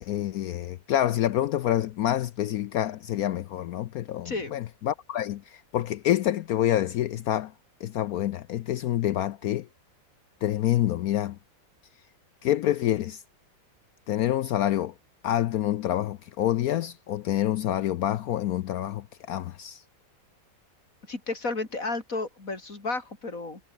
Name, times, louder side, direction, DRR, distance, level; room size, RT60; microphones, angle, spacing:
voice 1, 0.0-7.5 7.8-9.7 10.4-11.4 12.4-13.2 14.1-14.9 15.2-19.8, left 12 dB, 70° left, 0.9 m, -27 dB
voice 2, 4.2-4.6 21.1-23.6, left 3 dB, 45° left, 4.7 m, -32 dB
omnidirectional pair, 2.0 m